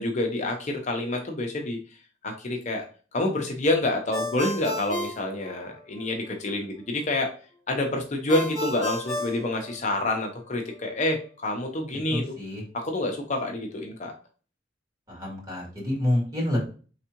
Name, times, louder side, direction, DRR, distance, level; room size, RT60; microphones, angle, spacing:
voice 1, 0.0-1.8 2.2-2.8 3.1-7.3 7.7-12.3 12.7-14.1, left 2 dB, 40° left, 2 dB, 0.7 m, -27 dB
Ringtone, 4.1-6.1 8.3-10.3, left 1 dB, 20° left, 1.1 m, -33 dB
voice 2, 12.1-12.6 15.1-16.6, left 1 dB, 20° right, -3 dB, 2.2 m, -28 dB
4.8 x 3.5 x 2.9 m, 0.37 s
head